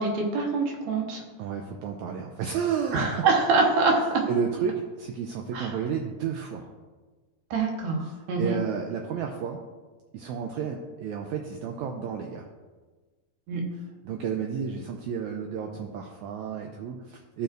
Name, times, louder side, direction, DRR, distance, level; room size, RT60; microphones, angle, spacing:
voice 1, 0.0-1.2 2.9-4.2 5.5-5.7 7.5-8.6 13.5-13.6, right 3 dB, 60° right, 0 dB, 2.3 m, -25 dB
voice 2, 1.4-3.3 4.3-6.7 8.1-9.6 10.1-12.5 14.0-17.4, right 7 dB, 85° right, 3 dB, 1.6 m, -31 dB
16.0 x 5.6 x 2.6 m, 1.3 s
omnidirectional pair, 4.0 m